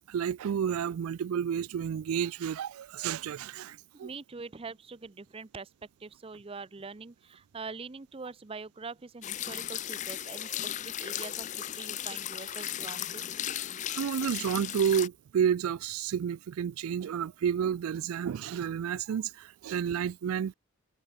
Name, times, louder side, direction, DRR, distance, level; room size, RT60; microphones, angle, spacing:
voice 1, 0.1-4.1 13.9-20.5, right 8 dB, 80° right, 0.3 m, -30 dB
voice 2, 3.9-5.7 6.0-13.3, right 4 dB, 25° right, 0.5 m, -44 dB
sound 1, 9.2-15.1, left 11 dB, 35° left, 0.4 m, -36 dB
head